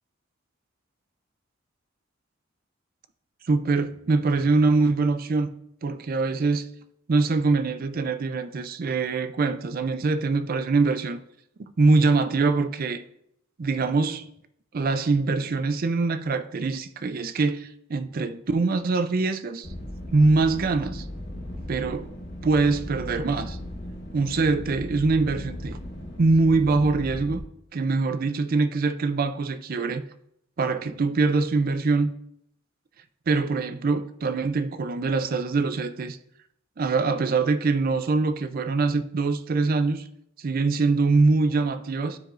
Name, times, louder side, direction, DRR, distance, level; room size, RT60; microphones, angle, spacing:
voice 1, 3.4-5.5 5.8-6.7 7.1-11.2 11.6-13.0 13.6-14.3 14.7-19.7 20.1-21.1 21.7-22.1 22.4-23.6 24.1-25.8 26.2-27.4 27.7-30.0 30.6-32.1 33.3-36.2 36.8-40.0 40.4-42.2, right 3 dB, 45° right, 0.4 m, -23 dB
sound 1, 19.6-27.4, left 1 dB, 60° left, 1.2 m, -37 dB
11.5 x 4.8 x 2.5 m
head